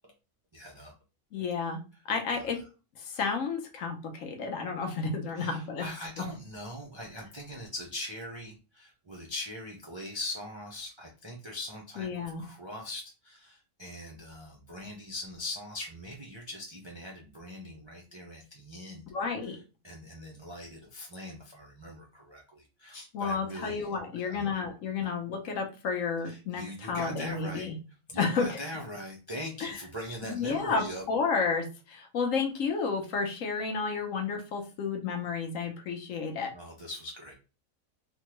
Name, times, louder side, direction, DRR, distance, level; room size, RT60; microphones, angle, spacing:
voice 1, 0.5-0.9 2.3-2.5 5.4-19.1 19.4-19.6 19.8-24.5 25.0-25.1 26.2-27.7 28.1-31.0 36.5-37.3, left 1 dB, 40° right, -2 dB, 0.4 m, -41 dB
voice 2, 1.3-1.8 2.1-2.6 3.0-5.9 12.0-12.4 19.1-19.6 23.1-27.8 28.2-28.6 29.6-29.8 30.2-36.5, left 5 dB, 65° left, 4 dB, 1.1 m, -31 dB
3.6 x 2.2 x 3.0 m, 0.32 s
omnidirectional pair, 1.5 m